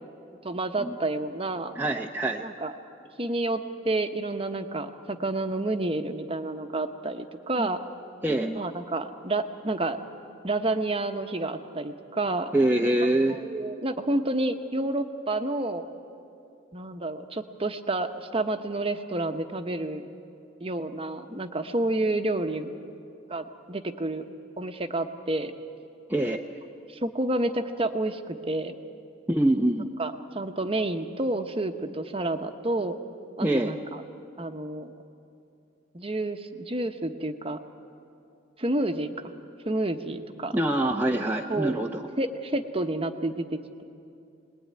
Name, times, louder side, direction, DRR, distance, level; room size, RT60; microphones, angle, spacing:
voice 1, 0.4-1.7 2.4-2.7 3.2-7.8 8.5-10.0 10.4-12.5 13.4-15.9 16.7-20.0 20.6-22.7 23.3-24.3 24.6-25.5 26.9-28.7 30.0-33.0 33.4-34.0 34.4-34.9 35.9-37.6 38.6-39.3 39.6-40.6 41.5-41.8 42.2-43.8, right 2 dB, 30° right, 7 dB, 1.0 m, -29 dB
voice 2, 1.8-2.4 7.6-7.7 8.2-8.6 12.5-13.4 26.1-26.4 29.3-29.9 33.4-33.7 40.5-42.0, right 1 dB, 10° right, 0 dB, 0.7 m, -24 dB
25.0 x 20.5 x 9.6 m, 2.6 s
head